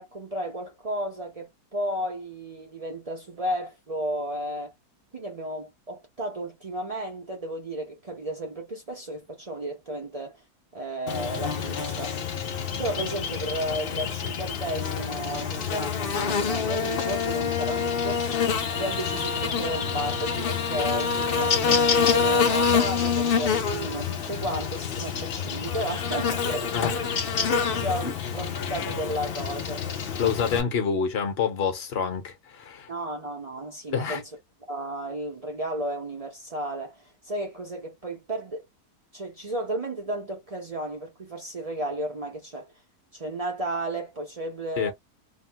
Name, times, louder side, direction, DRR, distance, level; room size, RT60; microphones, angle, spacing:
voice 1, 0.0-4.7 5.1-10.4 10.7-12.2 12.8-18.2 18.7-27.2 27.5-29.8 32.9-34.2 34.7-38.6 39.1-42.7 43.1-44.9, right 1 dB, 65° right, 0.3 m, -33 dB
Buzz, 11.1-30.6, left 6 dB, 75° left, 0.5 m, -27 dB
voice 2, 30.2-32.9 33.9-34.2 44.8-44.9, left 6 dB, 50° left, 0.8 m, -27 dB
2.9 x 2.1 x 2.7 m
omnidirectional pair, 1.8 m